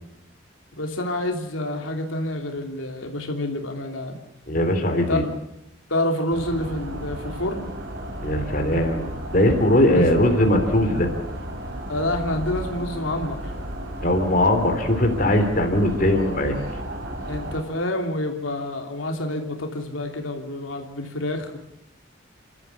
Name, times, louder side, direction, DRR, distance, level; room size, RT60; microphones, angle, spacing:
voice 1, 0.8-4.2 5.1-5.3 5.9-7.7 9.8-10.1 11.9-13.5 17.3-21.6, left 1 dB, 90° left, 3 dB, 3.1 m, -28 dB
voice 2, 4.5-5.2 8.2-9.0 9.3-11.1 14.0-16.5, left 1 dB, 45° left, 4 dB, 3.4 m, -20 dB
sound 1, 6.3-17.6, equal, 55° right, 5.7 m, -33 dB
29.5 x 13.5 x 8.3 m, 0.84 s
head